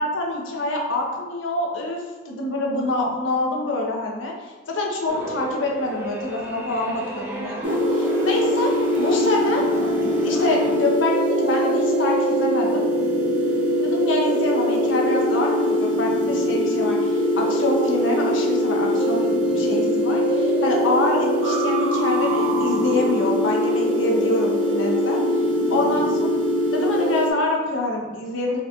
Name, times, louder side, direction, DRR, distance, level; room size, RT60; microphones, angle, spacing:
voice 1, 0.0-9.7 10.0-12.9 13.8-25.2 25.7-26.3 26.7-28.6, left 2 dB, 70° left, -1 dB, 0.6 m, -26 dB
sound 1, 5.1-10.8, right 2 dB, 10° right, 0.4 m, -33 dB
sound 2, 7.6-27.3, equal, 65° right, 0.6 m, -22 dB
3.8 x 2.2 x 2.7 m, 1.2 s
head